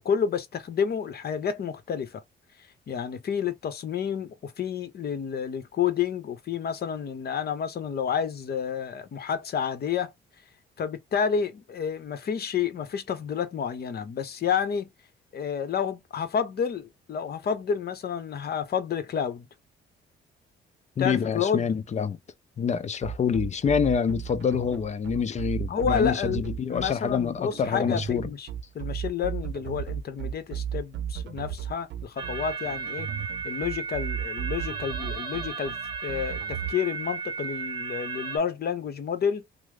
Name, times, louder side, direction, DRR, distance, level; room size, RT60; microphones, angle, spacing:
voice 1, 0.0-2.2 2.9-10.1 10.8-14.9 15.3-19.5 21.0-21.6 25.7-28.5 28.7-33.1 33.4-35.7 36.0-39.5, left 7 dB, 55° left, 0.9 m, -30 dB
voice 2, 21.0-22.2 22.6-28.3, left 7 dB, 35° left, 0.5 m, -26 dB
sound 1, 23.0-36.7, right 9 dB, 65° right, 0.6 m, -35 dB
sound 2, 32.2-38.4, right 5 dB, 25° right, 0.9 m, -34 dB
3.0 x 2.0 x 3.4 m
cardioid pair, 90°, 20 cm